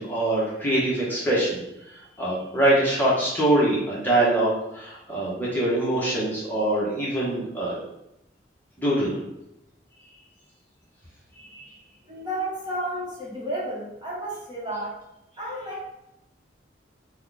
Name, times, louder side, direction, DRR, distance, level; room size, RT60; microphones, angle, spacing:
voice 1, 0.0-1.6 2.2-7.7 8.8-9.2 11.5-11.6, right 1 dB, 10° left, -7 dB, 1.1 m, -23 dB
voice 2, 12.0-15.0 15.4-15.9, right 1 dB, 25° right, -6 dB, 1.2 m, -32 dB
5.0 x 2.4 x 3.9 m, 0.86 s
head